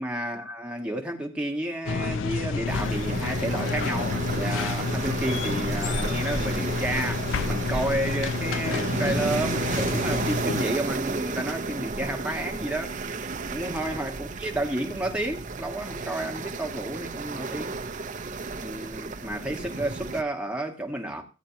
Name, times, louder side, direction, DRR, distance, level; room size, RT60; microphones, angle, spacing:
voice 1, 0.0-13.0 13.5-17.8 18.5-21.2, right 1 dB, 5° right, 1.6 m, -31 dB
sound 1, 1.9-10.7, left 4 dB, 75° left, 0.4 m, -29 dB
sound 2, 2.7-20.2, right 3 dB, 40° right, 0.6 m, -32 dB
15.5 x 8.9 x 2.8 m
head